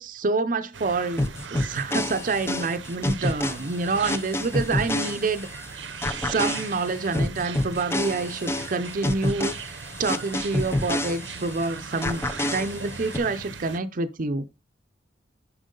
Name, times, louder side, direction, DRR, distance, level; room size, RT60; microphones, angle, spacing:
voice 1, 0.0-5.8 6.2-12.2 12.5-14.6, right 3 dB, 50° right, 0.6 m, -28 dB
sound 1, 0.7-13.8, right 5 dB, 90° right, 0.8 m, -39 dB
sound 2, 1.2-5.6 6.0-11.6 12.0-13.2, left 1 dB, 15° left, 0.6 m, -28 dB
10.0 x 4.7 x 3.8 m
head